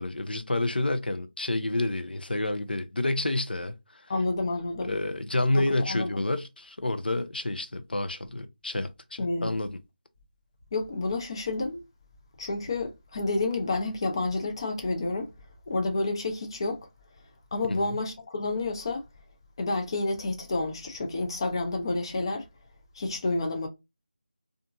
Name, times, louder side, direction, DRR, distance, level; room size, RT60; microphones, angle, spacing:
voice 1, 0.0-4.1 4.8-9.8 17.7-18.0, left 2 dB, 75° left, 0.6 m, -29 dB
voice 2, 4.1-4.9 5.5-6.1 9.2-9.5 10.7-11.8 12.4-15.3 15.7-16.8 17.5-19.0 19.6-22.4 23.0-23.7, left 2 dB, 30° left, 0.5 m, -29 dB
2.7 x 2.5 x 2.3 m
figure-of-eight pair, 165°, 5 cm